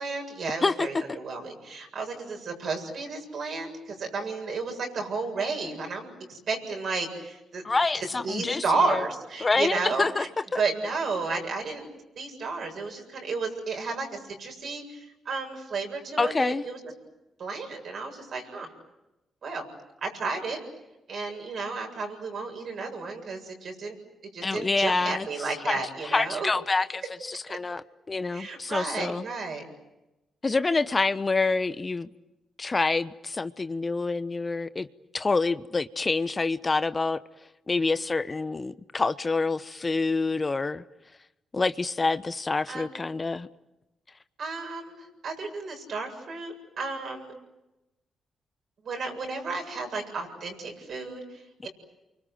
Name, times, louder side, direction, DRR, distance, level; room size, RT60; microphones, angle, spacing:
voice 1, 0.0-7.6 8.2-10.3 10.6-11.9 12.2-16.8 17.4-18.7 19.4-19.6 20.0-20.6 21.1-24.0 24.3-26.5 27.5-27.6 28.3-29.6 42.7-43.0 44.4-47.3 48.8-51.7, right 3 dB, 60° right, 7.6 m, -32 dB
voice 2, 7.6-8.6 8.9-9.0 9.4-10.3 10.5-10.6 16.2-16.6 24.4-25.3 25.7-25.8 26.1-27.0 27.3-29.2 30.4-32.1 32.6-34.9 35.1-37.2 37.7-40.8 41.5-43.5 51.6-51.7, left 3 dB, 35° left, 1.0 m, -27 dB
30.0 x 24.5 x 7.9 m
hypercardioid pair, 40°, 0 cm